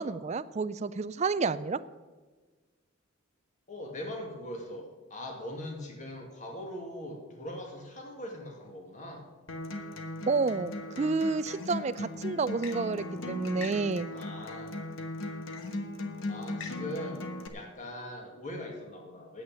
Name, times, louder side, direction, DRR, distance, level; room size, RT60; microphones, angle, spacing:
voice 1, 0.0-1.8 10.3-14.1, right 4 dB, 30° right, 15 dB, 0.3 m, -30 dB
voice 2, 3.7-9.3 14.1-14.8 16.3-17.3 17.5-19.4, left 1 dB, 35° left, 1 dB, 2.1 m, -41 dB
Acoustic guitar, 9.5-17.5, left 2 dB, 70° left, 1.3 m, -38 dB
9.6 x 8.5 x 8.7 m, 1.3 s
head